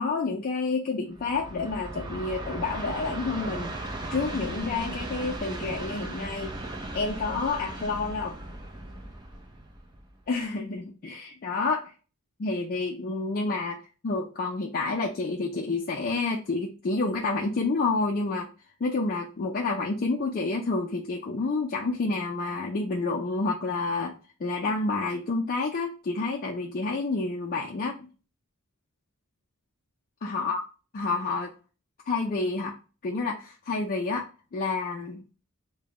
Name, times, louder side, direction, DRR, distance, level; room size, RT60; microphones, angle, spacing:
voice 1, 0.0-3.8 4.1-6.5 6.9-8.4 10.3-11.9 12.4-13.8 14.0-18.5 18.8-24.1 24.4-28.1 30.2-30.6 30.9-31.5 32.1-32.8 33.0-34.2 34.5-35.2, left 3 dB, 40° left, 0 dB, 0.4 m, -29 dB
Train, 1.1-10.3, right 2 dB, 20° right, 0.6 m, -37 dB
3.5 x 2.2 x 3.5 m, 0.35 s
head